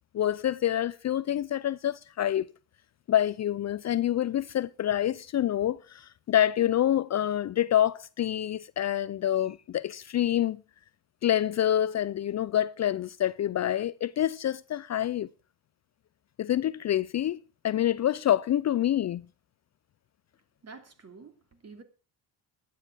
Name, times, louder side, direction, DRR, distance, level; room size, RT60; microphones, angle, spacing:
voice 1, 0.1-2.5 3.1-10.6 11.2-15.3 16.4-19.3, left 11 dB, 40° left, 0.5 m, -27 dB
voice 2, 20.6-21.8, right 4 dB, 35° right, 3.0 m, -49 dB
12.5 x 9.5 x 6.2 m
supercardioid pair, 80°, 42 cm